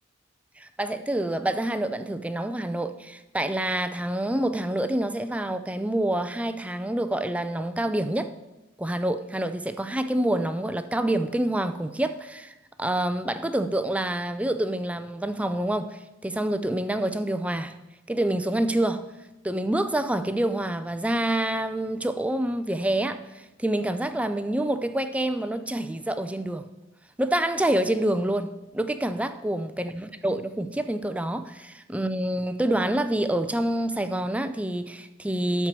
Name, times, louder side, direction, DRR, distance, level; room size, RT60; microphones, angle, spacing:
voice 1, 0.6-8.3 8.8-17.7 18.1-19.1 19.4-26.6 27.2-35.7, right 1 dB, 5° right, 0.4 m, -27 dB
12.5 x 4.6 x 7.3 m
head